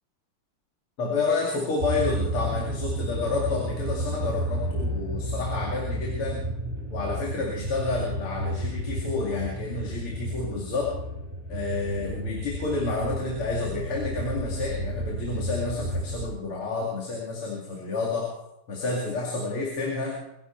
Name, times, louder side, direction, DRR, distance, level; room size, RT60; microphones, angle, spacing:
voice 1, 1.0-6.5 6.9-10.9 11.5-18.3 18.7-20.2, left 3 dB, 80° left, -2 dB, 3.3 m, -30 dB
sound 1, 1.8-16.3, right 1 dB, 30° right, 6.9 m, -32 dB
22.5 x 10.5 x 4.5 m, 0.87 s
omnidirectional pair, 2.4 m